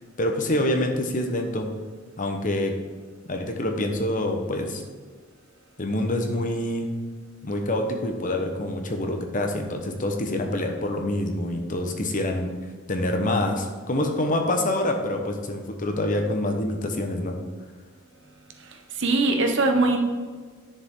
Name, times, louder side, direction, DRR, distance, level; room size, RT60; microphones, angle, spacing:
voice 1, 0.2-1.7 2.2-2.8 3.3-4.8 5.8-6.9 7.4-12.5 12.9-17.4, left 1 dB, 40° left, 3 dB, 1.0 m, -26 dB
voice 2, 18.6-20.0, right 2 dB, 60° right, 4 dB, 1.1 m, -22 dB
10.5 x 6.7 x 3.8 m, 1.5 s
head